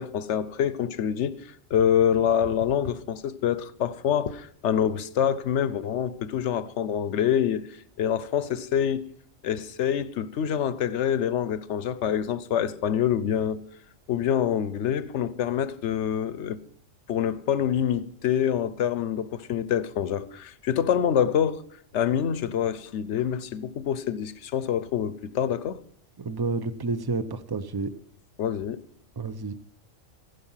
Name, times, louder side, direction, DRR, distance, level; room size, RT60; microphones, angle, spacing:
voice 1, 0.0-9.1 9.4-13.6 14.1-16.6 17.1-21.6 21.9-25.8 28.4-28.8, left 9 dB, 65° left, 1.0 m, -26 dB
voice 2, 26.2-27.9 29.2-29.5, right 3 dB, 25° right, 0.6 m, -30 dB
15.0 x 12.0 x 5.7 m
omnidirectional pair, 1.4 m